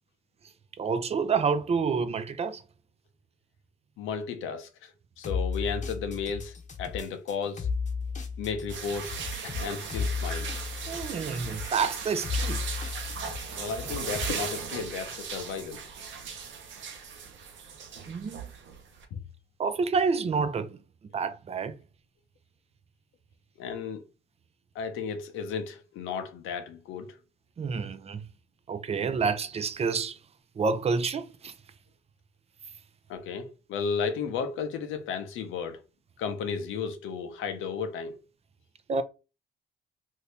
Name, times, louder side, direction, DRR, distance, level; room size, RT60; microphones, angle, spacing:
voice 1, 0.8-2.6 10.9-12.6 18.1-18.4 19.6-20.8 21.1-21.7 27.6-28.2 28.7-30.2 30.6-31.5 38.9-39.0, right 5 dB, 30° right, 0.5 m, -28 dB
voice 2, 4.0-7.7 8.4-10.5 13.6-15.8 19.1-19.2 23.6-24.0 24.7-27.2 27.8-27.9 33.1-35.8 36.2-38.2, left 6 dB, 85° left, 0.7 m, -34 dB
sound 1, 5.2-14.5, left 5 dB, 35° left, 0.8 m, -34 dB
sound 2, 8.7-19.0, right 6 dB, 70° right, 0.8 m, -38 dB
2.8 x 2.7 x 3.3 m
cardioid pair, 90°, 20 cm